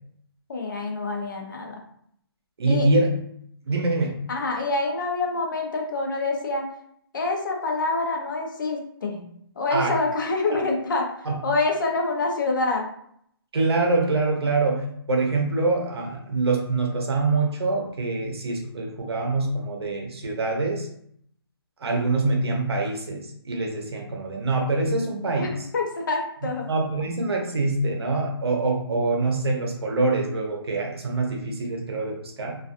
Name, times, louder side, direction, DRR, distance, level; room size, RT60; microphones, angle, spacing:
voice 1, 0.5-1.8 2.7-2.9 4.3-6.7 7.1-9.2 9.6-12.9 25.4-26.7, left 3 dB, 50° left, 1 dB, 0.6 m, -26 dB
voice 2, 2.6-3.1 3.7-4.2 9.7-9.9 11.3-11.4 13.5-20.9 21.8-25.5 26.7-32.6, right 3 dB, 70° right, 1 dB, 0.8 m, -25 dB
2.4 x 2.4 x 2.5 m, 0.68 s
hypercardioid pair, 165°, 14 cm